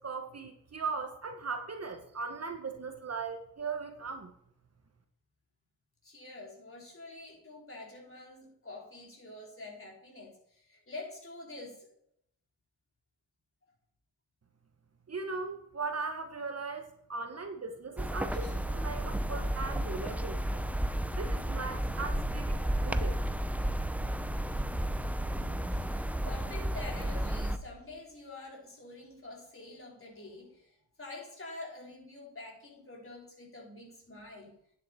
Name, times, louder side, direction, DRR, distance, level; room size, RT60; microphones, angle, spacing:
voice 1, 0.0-4.3 15.1-20.6 21.2-23.2, right 4 dB, 35° right, 5 dB, 1.3 m, -38 dB
voice 2, 6.0-11.9 18.3-18.6 25.4-34.6, left 2 dB, 30° left, -2 dB, 4.2 m, -47 dB
sound 1, 18.0-27.6, right 1 dB, 5° right, 0.7 m, -32 dB
9.8 x 7.7 x 4.3 m, 0.72 s
supercardioid pair, 50°, 42 cm